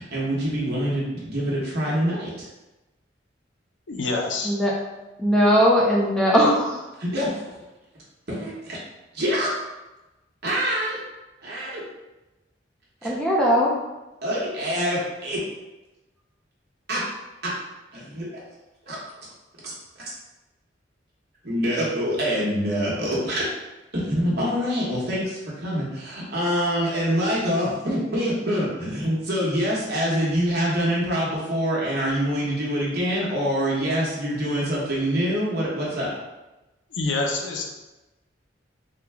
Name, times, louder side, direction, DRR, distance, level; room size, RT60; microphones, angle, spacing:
voice 1, 0.0-2.5 7.0-7.4 8.3-8.8 9.1-9.5 10.4-11.0 11.4-11.8 13.0-13.1 14.2-15.4 16.9-17.0 17.4-17.5 17.9-18.4 18.9-19.0 19.6-19.7 21.4-23.5 23.9-36.1, equal, 55° right, -5 dB, 1.2 m, -25 dB
voice 2, 3.9-4.6 37.0-37.7, left 3 dB, 70° left, 1 dB, 0.6 m, -26 dB
voice 3, 5.2-6.8 13.0-13.8, equal, 5° left, -4 dB, 0.5 m, -19 dB
3.7 x 2.3 x 3.4 m, 1.0 s
head